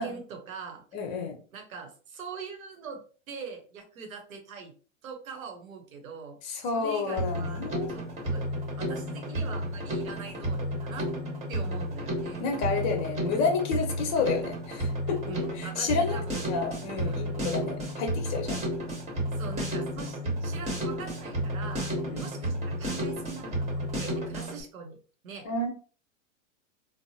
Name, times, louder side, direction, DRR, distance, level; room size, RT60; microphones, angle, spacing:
voice 1, 0.0-0.8 1.5-4.7 5.0-6.4 6.7-7.6 7.9-8.5 8.8-11.1 11.5-12.7 15.2-16.6 17.0-17.7 19.4-21.9 22.2-25.0 25.2-25.5, right 5 dB, 90° right, 4 dB, 1.0 m, -42 dB
voice 2, 0.9-1.4 6.4-7.9 12.4-15.2 15.5-16.2 16.5-18.7 22.0-22.3 25.4-25.7, left 4 dB, 45° left, 4 dB, 1.0 m, -30 dB
Drum kit, 7.2-24.6, equal, 15° right, 1.1 m, -32 dB
3.2 x 2.1 x 2.7 m, 0.39 s
hypercardioid pair, 110°, 40 cm